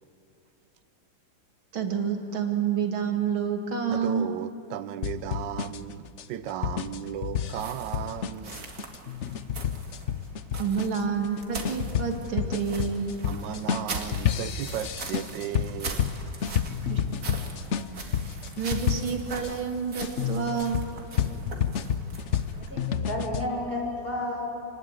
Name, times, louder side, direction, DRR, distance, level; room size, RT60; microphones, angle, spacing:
voice 1, 1.7-4.3 10.6-13.1 16.9-17.0 17.3-17.4 18.6-20.9, right 6 dB, 90° right, 3.1 m, -28 dB
voice 2, 3.9-8.7 13.2-16.1, right 10 dB, 70° right, 1.4 m, -35 dB
sound 1, 5.0-19.5 20.0-23.5, left 8 dB, 60° left, 0.7 m, -30 dB
sound 2, 7.5-23.0, right 3 dB, 50° right, 2.7 m, -41 dB
voice 3, 22.6-24.4, left 1 dB, 25° left, 7.1 m, -32 dB
28.5 x 20.5 x 9.2 m
omnidirectional pair, 2.1 m